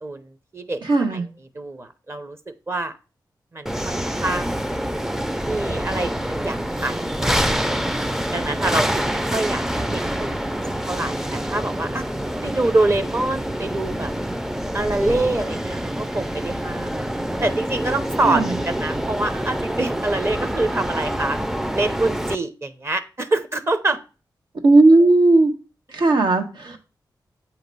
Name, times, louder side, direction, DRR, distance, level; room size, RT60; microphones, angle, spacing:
voice 1, 0.0-2.4 2.7-3.0 3.5-4.7 5.4-7.8 8.3-10.5 10.8-12.0 12.4-14.1 14.7-16.9 17.4-21.4 21.7-24.0 26.7-26.8, right 2 dB, 35° right, 10 dB, 0.7 m, -26 dB
voice 2, 0.9-1.2 18.2-18.5 24.6-25.5 25.9-26.8, right 2 dB, 85° right, 3 dB, 1.2 m, -15 dB
sound 1, 3.7-22.4, equal, 5° right, 0.4 m, -26 dB
7.9 x 2.9 x 5.3 m, 0.33 s
wide cardioid pair, 90°, 8 cm